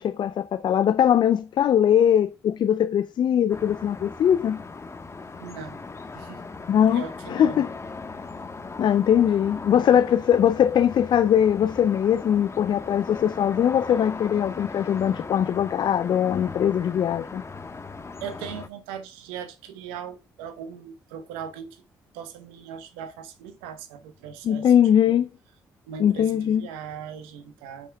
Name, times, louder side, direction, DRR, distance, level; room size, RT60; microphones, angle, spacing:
voice 1, 0.0-4.6 6.7-7.0 7.3-7.7 8.8-17.4 24.4-25.3 26.0-26.6, left 9 dB, 55° left, 0.4 m, -21 dB
sound 1, 3.5-18.7, left 4 dB, 30° left, 1.2 m, -38 dB
voice 2, 5.4-5.8 6.1-6.4 6.9-7.6 18.2-21.8 22.1-24.7 25.0-25.2 25.9-27.9, right 8 dB, 85° right, 1.0 m, -39 dB
15.0 x 5.4 x 2.3 m
hypercardioid pair, 45°, 9 cm